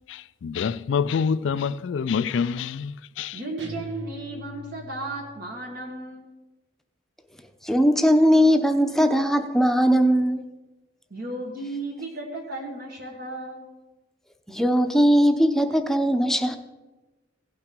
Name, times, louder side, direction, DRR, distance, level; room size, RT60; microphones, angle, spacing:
voice 1, 0.1-3.4, left 6 dB, 85° left, 0.3 m, -26 dB
voice 2, 3.3-6.3 11.1-13.7, right 2 dB, 55° right, 1.7 m, -34 dB
sound 1, 3.6-5.3, equal, 90° right, 1.6 m, -40 dB
voice 3, 7.6-10.4 14.5-16.6, equal, ahead, 0.8 m, -19 dB
16.5 x 5.8 x 5.2 m
head